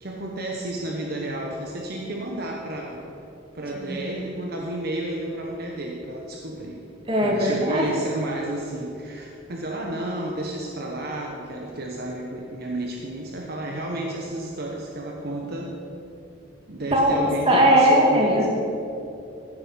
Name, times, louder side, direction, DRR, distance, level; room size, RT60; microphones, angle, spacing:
voice 1, 0.0-3.3 3.5-6.8 7.2-15.7 16.7-18.5, right 1 dB, 55° right, 0 dB, 1.1 m, -31 dB
voice 2, 7.1-7.9 16.9-17.2 17.5-18.5, equal, 30° right, -1 dB, 2.1 m, -19 dB
15.5 x 8.1 x 5.7 m, 2.8 s
head